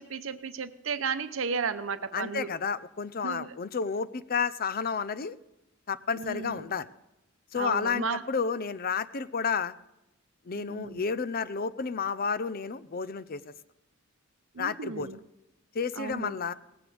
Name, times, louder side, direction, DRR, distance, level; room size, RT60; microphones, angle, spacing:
voice 1, 0.0-2.5 3.2-3.6 6.2-6.7 7.6-8.2 10.6-11.0 14.5-15.2 16.0-16.4, right 5 dB, 70° right, 11 dB, 0.8 m, -34 dB
voice 2, 2.1-5.4 5.9-6.9 7.5-9.7 10.5-13.4 14.6-15.1 15.7-16.5, left 5 dB, 45° left, 15 dB, 0.6 m, -31 dB
18.5 x 15.5 x 3.4 m, 0.93 s
head